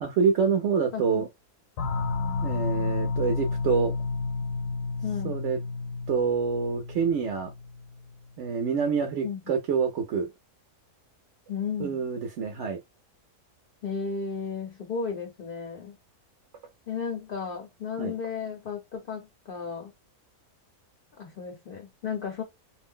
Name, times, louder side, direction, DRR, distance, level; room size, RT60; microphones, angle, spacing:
voice 1, 0.0-1.3 2.4-3.9 5.2-5.6 6.1-7.5 8.4-10.3 11.8-12.8 18.0-18.1, right 6 dB, 65° right, 0.7 m, -26 dB
voice 2, 0.9-1.2 5.0-5.4 9.2-9.5 11.5-12.0 13.8-15.9 16.9-19.9 21.2-22.4, left 6 dB, 55° left, 0.6 m, -34 dB
sound 1, 1.8-8.1, left 4 dB, 85° left, 1.1 m, -31 dB
2.6 x 2.0 x 3.5 m
omnidirectional pair, 1.7 m